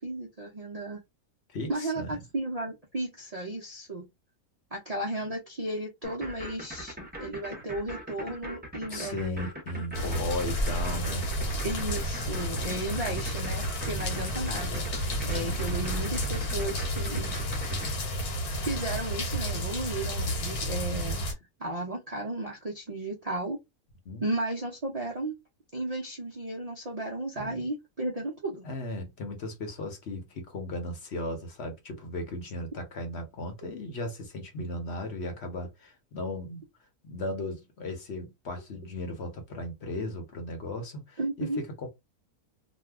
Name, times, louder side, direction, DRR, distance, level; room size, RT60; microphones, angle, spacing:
voice 1, 0.0-1.0 1.7-4.1 4.7-9.5 11.6-17.3 18.6-21.3 21.6-23.6 24.2-25.4 25.7-28.7 33.6-33.7 41.2-41.6, right 2 dB, 85° right, 0.3 m, -34 dB
voice 2, 1.5-2.2 8.9-11.3 15.4-15.8 24.1-24.2 27.4-27.6 28.6-36.6 37.0-41.9, left 1 dB, 50° left, 1.0 m, -36 dB
sound 1, 6.0-17.9, right 1 dB, 10° right, 0.6 m, -41 dB
sound 2, 9.9-21.3, equal, 75° left, 1.4 m, -31 dB
2.7 x 2.3 x 3.3 m
omnidirectional pair, 1.6 m